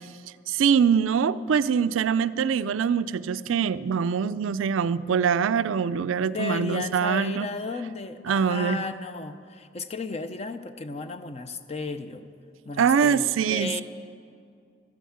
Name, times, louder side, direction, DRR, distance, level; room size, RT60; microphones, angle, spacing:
voice 1, 0.5-7.5 8.3-8.8 12.8-13.8, right 7 dB, 75° right, 15 dB, 0.4 m, -23 dB
voice 2, 6.3-12.3 12.6-13.8, left 3 dB, 30° left, 10 dB, 0.6 m, -34 dB
13.0 x 9.2 x 8.6 m, 2.3 s
head